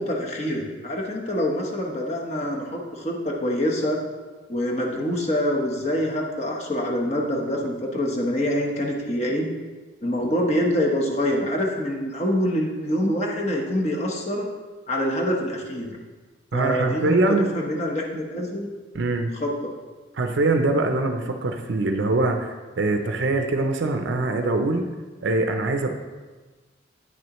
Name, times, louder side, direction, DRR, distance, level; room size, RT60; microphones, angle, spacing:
voice 1, 0.0-4.0 4.5-9.5 10.0-14.5 14.9-16.0 16.5-18.7 19.4-19.7, equal, 35° left, -1 dB, 0.9 m, -25 dB
voice 2, 16.5-17.5 18.9-19.3 20.2-24.9 25.2-26.0, right 2 dB, 75° right, 6 dB, 0.5 m, -23 dB
8.9 x 6.2 x 3.0 m, 1.3 s
head